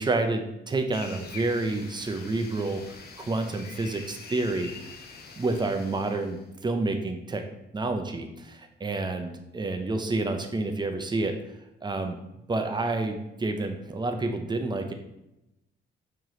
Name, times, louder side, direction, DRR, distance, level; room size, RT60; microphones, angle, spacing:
voice 1, 0.0-4.9 5.4-7.4 7.7-11.4 11.8-12.2 12.5-14.9, right 2 dB, 20° right, 6 dB, 0.6 m, -29 dB
sound 1, 0.9-6.4, left 4 dB, 50° left, 0.7 m, -45 dB
4.6 x 3.1 x 3.8 m, 0.91 s
cardioid pair, 90°, 20 cm